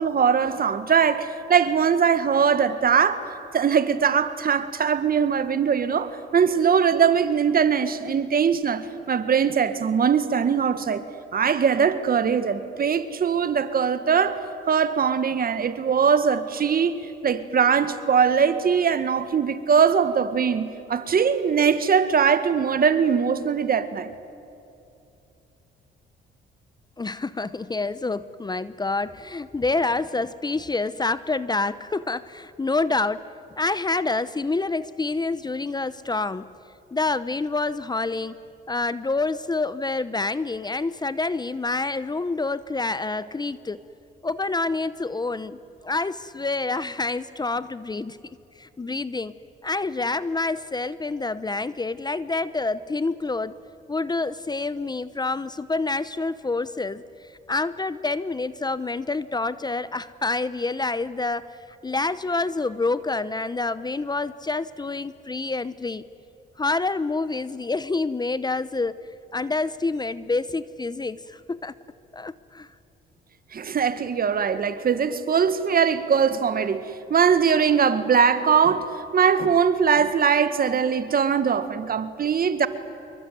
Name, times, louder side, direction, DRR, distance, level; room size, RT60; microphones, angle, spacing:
voice 1, 0.0-3.3 3.5-11.0 11.3-14.4 14.7-17.0 17.2-24.1 73.5-82.7, right 7 dB, 50° right, 1.8 m, -21 dB
voice 2, 27.0-33.3 33.6-36.5 36.9-38.4 38.7-43.8 44.2-48.2 48.6-49.3 49.6-53.6 53.9-66.0 66.6-69.0 69.3-71.7 72.1-72.7, left 3 dB, 20° left, 0.8 m, -27 dB
26.5 x 23.0 x 9.4 m
cardioid pair, 90°, 20 cm